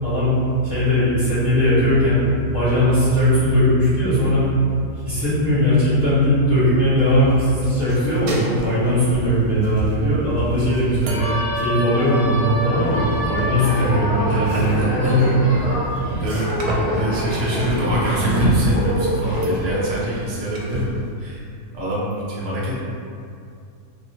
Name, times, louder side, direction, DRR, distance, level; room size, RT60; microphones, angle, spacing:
voice 1, 0.0-0.3 0.6-2.2 2.5-4.4 5.0-15.3, equal, 15° right, -18 dB, 1.1 m, -19 dB
sound 1, 7.0-21.1, right 1 dB, 80° right, 1.0 m, -30 dB
sound 2, 11.1-20.0, equal, 65° left, 0.4 m, -25 dB
voice 2, 13.6-13.9 14.3-15.2 16.1-16.5 16.9-21.4 21.7-22.7, equal, 55° right, -7 dB, 0.8 m, -25 dB
2.8 x 2.7 x 2.8 m, 2.5 s
omnidirectional pair, 1.6 m